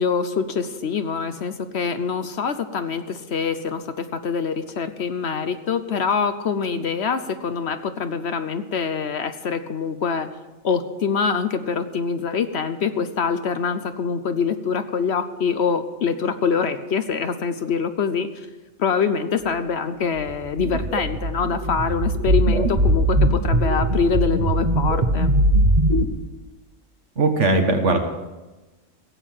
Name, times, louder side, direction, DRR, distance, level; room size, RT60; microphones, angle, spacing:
voice 1, 0.0-10.3 10.6-18.3 18.8-25.3, left 6 dB, 60° left, 10 dB, 1.0 m, -24 dB
sound 1, 20.3-26.0, right 1 dB, 35° right, 1.2 m, -20 dB
voice 2, 27.2-28.0, right 3 dB, 65° right, 4 dB, 1.9 m, -19 dB
16.0 x 8.3 x 7.5 m, 1.1 s
omnidirectional pair, 1.4 m